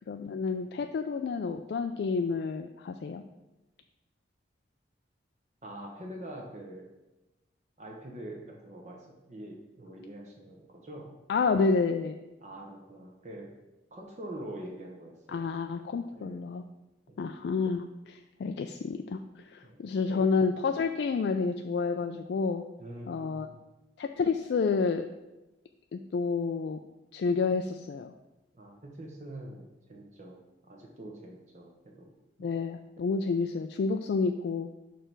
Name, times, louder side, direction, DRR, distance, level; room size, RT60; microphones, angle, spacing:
voice 1, 0.1-3.2 11.3-12.2 15.3-16.6 17.2-22.6 23.1-23.5 24.0-25.1 25.9-26.8 27.1-28.1 32.4-34.7, left 4 dB, 60° left, 6 dB, 0.3 m, -29 dB
voice 2, 5.6-6.9 7.8-11.2 12.4-13.5 13.9-15.5 16.1-16.5 17.1-17.2 19.6-20.4 22.8-23.5 28.5-30.4 30.7-32.0 32.4-32.6, right 1 dB, 40° right, -1 dB, 0.9 m, -44 dB
6.6 x 3.3 x 6.0 m, 1.0 s
head